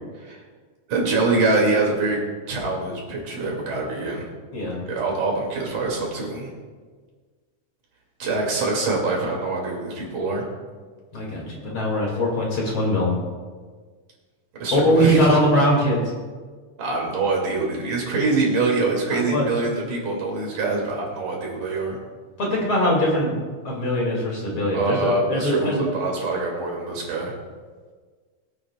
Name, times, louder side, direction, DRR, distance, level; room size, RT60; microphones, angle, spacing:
voice 1, 0.9-4.3 4.9-6.5 8.2-10.5 14.6-15.3 16.8-22.0 24.7-27.3, right 3 dB, 75° right, -2 dB, 4.0 m, -24 dB
voice 2, 11.1-13.1 14.7-16.0 19.1-19.5 22.4-23.4 23.6-25.8, equal, 45° left, -3 dB, 2.9 m, -21 dB
23.0 x 8.8 x 2.3 m, 1.5 s
omnidirectional pair, 3.6 m